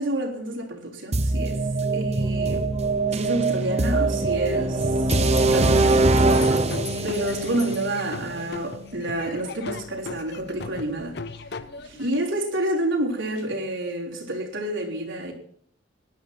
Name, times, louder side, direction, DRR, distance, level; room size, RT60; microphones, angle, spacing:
voice 1, 0.0-2.7 3.1-5.1 5.5-6.0 7.0-11.2 11.8-15.3, right 1 dB, 90° right, 3.7 m, -29 dB
sound 1, 1.1-9.0, right 2 dB, 35° right, 0.8 m, -23 dB
Bell, 4.8-8.4, left 7 dB, 20° left, 1.0 m, -41 dB
Laughter / Drum, 6.1-12.1, left 3 dB, 60° left, 0.7 m, -38 dB
18.0 x 12.0 x 4.3 m
head